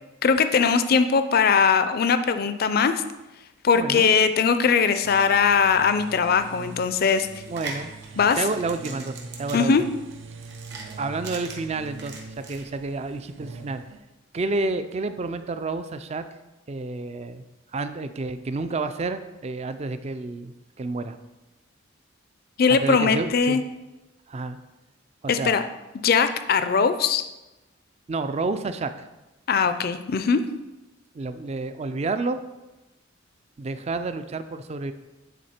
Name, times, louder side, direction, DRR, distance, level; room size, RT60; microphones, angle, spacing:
voice 1, 0.2-2.9 3.6-7.3 8.2-8.4 9.5-9.8 22.6-23.6 25.3-25.6 26.0-27.2 29.5-30.4, left 5 dB, 50° left, 11 dB, 0.4 m, -20 dB
voice 2, 3.7-4.1 7.5-7.9 8.4-9.9 11.0-13.8 14.3-16.3 16.7-17.4 17.7-21.2 22.7-23.6 24.3-24.6 25.2-25.6 28.1-29.1 31.1-32.4 33.6-34.9, right 3 dB, 35° right, 10 dB, 0.4 m, -30 dB
sound 1, 5.0-14.0, right 3 dB, 75° right, 0.7 m, -42 dB
sound 2, 7.3-12.6, right 4 dB, 55° right, 1.2 m, -40 dB
9.3 x 4.1 x 4.3 m, 1.0 s
head